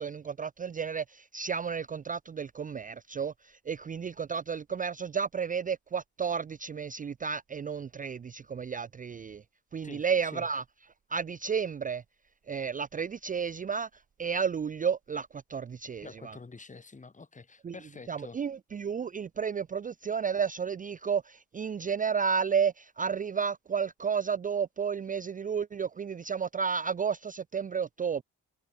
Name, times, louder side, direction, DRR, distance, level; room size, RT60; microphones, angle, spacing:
voice 1, 0.0-9.4 9.7-10.6 11.1-12.0 12.5-16.4 17.6-17.7 18.1-28.2, right 6 dB, 25° right, 0.5 m, -32 dB
voice 2, 9.8-10.5 16.0-18.4, left 4 dB, 25° left, 2.7 m, -47 dB
cardioid pair, 90°, 30 cm